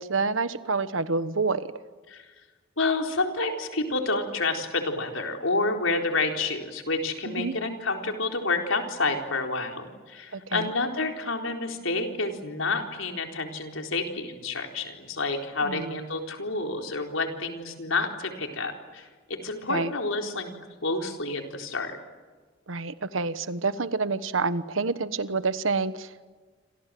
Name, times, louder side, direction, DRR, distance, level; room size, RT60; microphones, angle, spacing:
voice 1, 0.0-1.7 7.3-7.5 10.3-10.7 15.6-16.0 19.7-19.9 22.7-26.2, right 4 dB, 80° right, 13 dB, 1.2 m, -28 dB
voice 2, 2.8-20.5 20.8-22.0, left 3 dB, 85° left, 3 dB, 4.2 m, -29 dB
29.0 x 26.5 x 7.7 m, 1.4 s
head